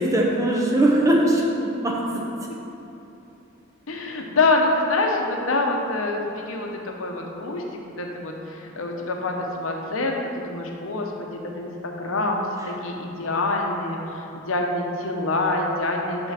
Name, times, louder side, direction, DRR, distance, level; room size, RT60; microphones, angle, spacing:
voice 1, 0.0-2.3, right 1 dB, 15° right, -2 dB, 0.8 m, -21 dB
voice 2, 3.9-16.3, left 2 dB, 80° left, 1 dB, 0.8 m, -26 dB
5.8 x 3.7 x 5.6 m, 3.0 s
head